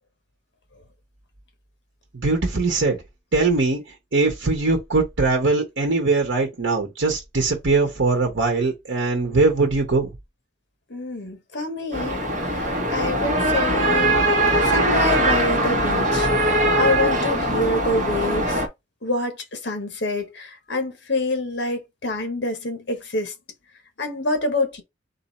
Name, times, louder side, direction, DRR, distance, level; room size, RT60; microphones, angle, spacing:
voice 1, 2.1-3.0 3.3-3.8 4.1-10.1, right 3 dB, 80° right, 1.0 m, -21 dB
voice 2, 10.9-14.2 14.6-18.6 19.0-23.3 24.0-24.8, left 2 dB, 65° left, 1.2 m, -27 dB
sound 1, 11.9-18.7, right 1 dB, 40° right, 1.3 m, -21 dB
3.9 x 2.7 x 4.0 m
head